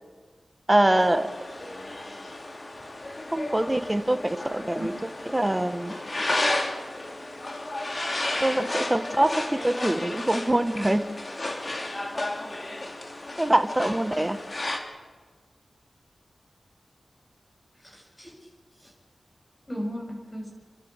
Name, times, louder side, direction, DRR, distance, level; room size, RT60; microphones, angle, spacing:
voice 1, 0.7-1.3 3.3-4.9 5.3-6.0 8.4-11.0 13.4-14.4, right 1 dB, 20° right, 9 dB, 1.7 m, -24 dB
sound 1, 0.9-14.8, left 1 dB, 45° left, 2.9 m, -33 dB
voice 2, 17.8-18.5 18.8-18.9 19.7-20.5, equal, 25° left, 1 dB, 7.3 m, -36 dB
29.5 x 12.0 x 7.5 m, 1.4 s
cardioid pair, 45°, 0 cm